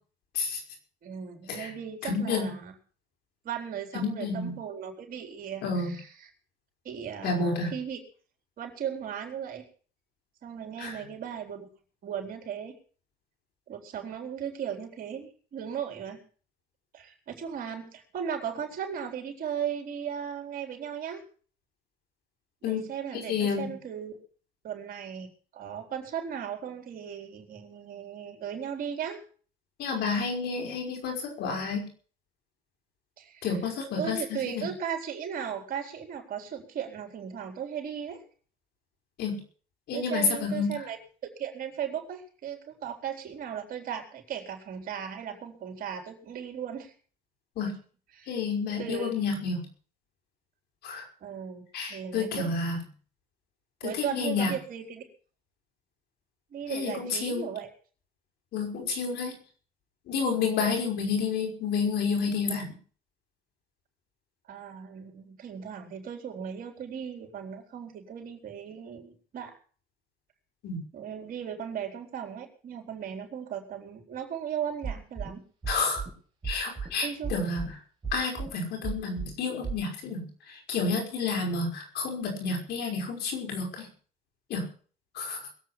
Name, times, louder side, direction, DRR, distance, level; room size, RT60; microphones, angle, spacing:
voice 1, 1.0-2.8 3.4-6.3 6.8-8.0 8.6-9.6 10.4-11.7 12.0-12.7 13.7-16.2 16.9-21.2 22.6-24.2 24.6-29.2 33.2-33.5 34.0-38.2 39.9-41.0 41.2-46.9 48.1-48.4 48.8-49.1 51.2-51.6 51.9-52.5 53.8-55.0 56.5-57.7 64.5-69.6 70.9-75.4 77.0-77.3, right 8 dB, 55° right, 3 dB, 4.1 m, -37 dB
voice 2, 2.0-2.5 3.9-4.5 5.6-5.9 7.2-7.7 10.8-11.0 22.6-22.8 23.3-23.7 29.8-31.9 33.4-34.7 39.2-39.4 39.9-40.7 47.6-47.7 48.3-49.7 50.8-51.0 51.7-52.8 53.8-54.5 56.7-57.5 58.5-59.4 60.1-62.7 70.6-70.8 75.7-76.0 76.4-77.7 78.1-83.9 84.5-84.7 85.1-85.5, left 4 dB, 75° left, 2 dB, 5.6 m, -30 dB
sound 1, 74.8-75.3 75.6-76.1 76.4-76.9 77.2-77.7 78.0-78.5 78.8-79.3 79.6-79.8, right 6 dB, 25° right, 4.8 m, -33 dB
22.0 x 8.4 x 5.8 m, 0.43 s
cardioid pair, 110°, 17 cm